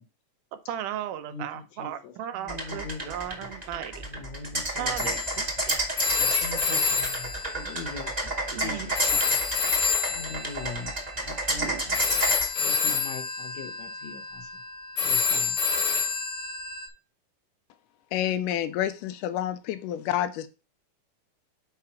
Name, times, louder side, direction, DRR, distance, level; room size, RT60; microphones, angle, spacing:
voice 1, 0.7-4.0 4.8-5.9 6.7-7.1 8.5-9.3 11.6-11.8, right 11 dB, 80° right, 2.2 m, -36 dB
voice 2, 1.3-3.1 3.4-3.5 4.0-5.1 6.2-9.4 10.1-12.3 12.6-14.5 15.0-15.6, left 4 dB, 70° left, 2.0 m, -41 dB
sound 1, 2.5-12.5, right 2 dB, 25° right, 0.8 m, -30 dB
Telephone, 5.0-8.6 8.9-16.9, left 5 dB, 55° left, 1.2 m, -28 dB
voice 3, 18.1-20.5, left 11 dB, 90° left, 2.2 m, -28 dB
5.9 x 4.7 x 5.6 m
omnidirectional pair, 3.7 m